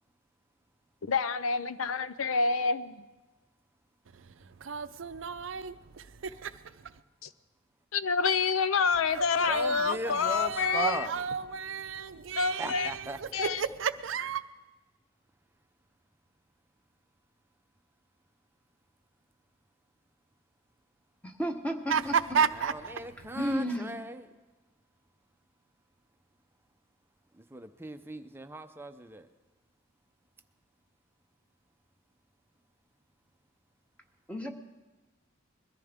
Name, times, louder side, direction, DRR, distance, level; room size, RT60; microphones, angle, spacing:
voice 1, 1.0-3.0 7.9-11.1 12.4-12.9 13.3-13.6, left 5 dB, 85° left, 0.6 m, -28 dB
voice 2, 4.1-7.0 9.0-14.4 21.9-23.5, right 6 dB, 70° right, 0.6 m, -33 dB
voice 3, 9.5-11.1 12.5-13.2 22.7-24.3 27.3-29.3, right 1 dB, 10° right, 0.6 m, -38 dB
voice 4, 21.2-22.4 23.3-24.0 34.3-34.5, equal, 5° left, 1.2 m, -33 dB
22.0 x 14.5 x 3.6 m
head